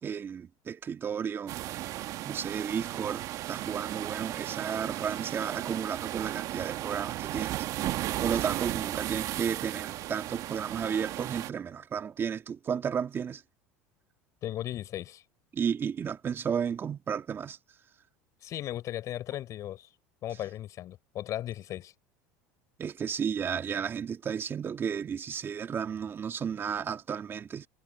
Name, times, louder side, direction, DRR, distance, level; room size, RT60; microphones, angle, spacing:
voice 1, 0.0-1.6 2.2-7.7 8.2-13.4 15.5-17.6 22.8-27.7, right 7 dB, 30° right, 1.7 m, -33 dB
sound 1, 1.5-11.5, right 14 dB, 55° right, 1.7 m, -35 dB
voice 2, 14.4-15.2 18.4-19.9 20.2-21.9, left 13 dB, 50° left, 6.0 m, -36 dB
hypercardioid pair, 90°, 7 cm